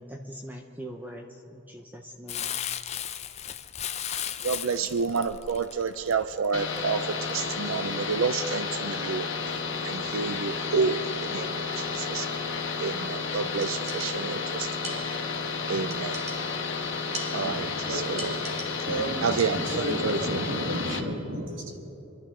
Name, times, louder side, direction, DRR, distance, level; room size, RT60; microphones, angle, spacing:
voice 1, 0.0-2.5, equal, 10° right, 2 dB, 0.7 m, -42 dB
Crumpling crinkling, 2.3-6.8 7.3-7.4, left 10 dB, 35° left, 0.5 m, -35 dB
voice 2, 4.4-9.5 9.8-12.3 12.8-15.0 15.7-16.2 17.3-18.4 19.2-20.7, right 5 dB, 85° right, 10 dB, 0.5 m, -30 dB
sound 1, 6.5-21.0, left 4 dB, 70° left, 1.4 m, -32 dB
sound 2, 13.6-14.5 14.8-15.5 15.9-16.7 17.1-17.8 18.2-19.0 19.4-19.9, right 2 dB, 30° right, 1.7 m, -41 dB
voice 3, 17.4-18.3 18.8-21.8, right 1 dB, 65° right, 2 dB, 2.0 m, -32 dB
26.5 x 12.0 x 3.8 m, 2.9 s
head